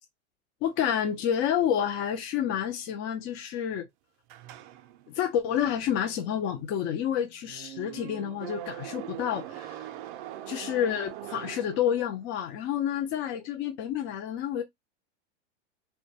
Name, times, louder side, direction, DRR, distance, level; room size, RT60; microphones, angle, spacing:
voice 1, 0.6-3.9 5.1-9.8 10.5-14.6, left 9 dB, 35° left, 0.4 m, -29 dB
sound 1, 4.3-12.3, right 12 dB, 50° right, 0.4 m, -43 dB
2.2 x 2.1 x 2.6 m
hypercardioid pair, 105°, 35 cm